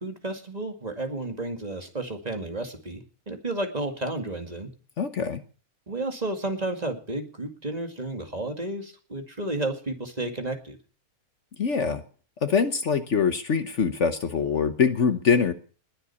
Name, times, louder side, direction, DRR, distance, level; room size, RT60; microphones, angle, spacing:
voice 1, 0.0-4.7 5.9-10.8, right 2 dB, 25° right, 5 dB, 2.3 m, -32 dB
voice 2, 5.0-5.4 11.6-12.0 12.4-15.5, left 6 dB, 55° left, 10 dB, 1.3 m, -24 dB
21.0 x 8.0 x 7.1 m, 0.41 s
omnidirectional pair, 1.5 m